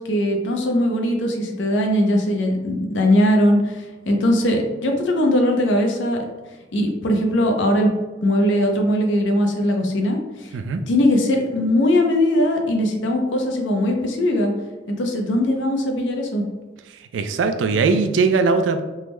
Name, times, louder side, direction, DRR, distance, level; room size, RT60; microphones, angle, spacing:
voice 1, 0.0-6.3 6.7-7.9 8.2-10.5 10.9-14.5 14.9-16.4, left 1 dB, 75° left, 3 dB, 0.5 m, -20 dB
voice 2, 17.1-18.8, right 4 dB, 75° right, 8 dB, 0.3 m, -20 dB
3.5 x 2.1 x 3.0 m, 1.2 s
head